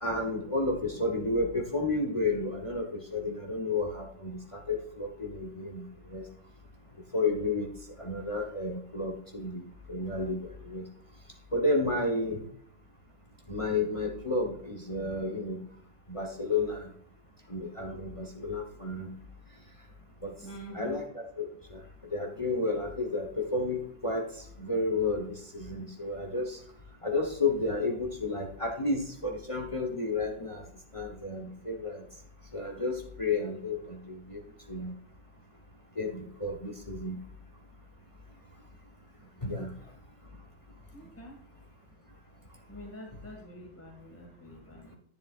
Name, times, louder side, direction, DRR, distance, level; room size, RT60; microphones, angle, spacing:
voice 1, 0.0-5.8 6.1-6.3 7.1-7.7 8.0-9.6 9.9-10.4 10.7-10.9 11.5-12.4 13.5-15.6 16.1-16.9 17.5-19.1 20.2-20.3 20.7-21.0 21.4-21.8 22.1-24.2 24.6-26.6 27.0-30.6 30.9-32.0 32.5-34.4 34.7-34.9 36.0-37.2 39.4-39.7, left 2 dB, 25° left, 1 dB, 1.1 m, -31 dB
voice 2, 20.4-21.1 40.9-41.4 42.7-45.0, equal, 10° left, 0 dB, 1.9 m, -46 dB
10.5 x 9.9 x 2.5 m, 0.67 s
omnidirectional pair, 1.4 m